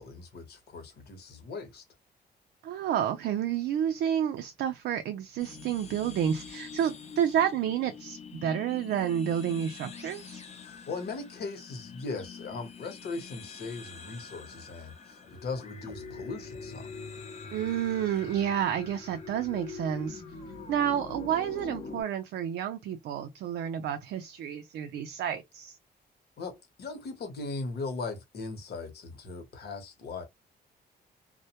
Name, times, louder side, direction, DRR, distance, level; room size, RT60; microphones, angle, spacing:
voice 1, 0.0-1.8 10.6-16.9 26.4-30.2, left 3 dB, 70° left, 0.9 m, -39 dB
voice 2, 2.6-10.4 17.5-20.2 20.7-25.8, right 9 dB, 85° right, 0.4 m, -30 dB
sound 1, 5.4-22.0, left 4 dB, 40° left, 0.6 m, -44 dB
2.1 x 2.1 x 2.8 m
cardioid pair, 105°, 17 cm